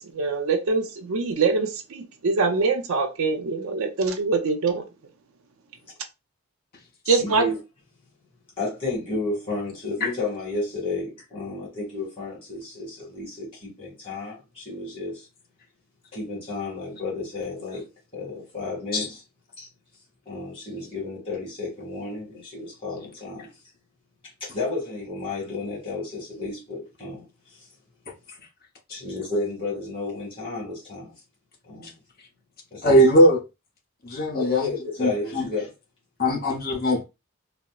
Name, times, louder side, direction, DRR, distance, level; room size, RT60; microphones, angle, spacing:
voice 1, 0.0-4.9 7.1-7.5, right 4 dB, 75° right, 0.5 m, -24 dB
voice 2, 7.2-7.6 8.6-15.3 16.1-17.8 18.1-19.2 19.6-19.7 20.2-23.5 24.4-27.2 27.5-27.6 28.9-31.1 31.6-32.0 32.7-33.0 34.3-35.7, left 3 dB, 25° left, 1.6 m, -32 dB
voice 3, 32.8-33.4 34.0-34.7 35.0-35.5 36.2-37.0, equal, 45° left, 0.8 m, -20 dB
4.0 x 2.0 x 2.3 m
head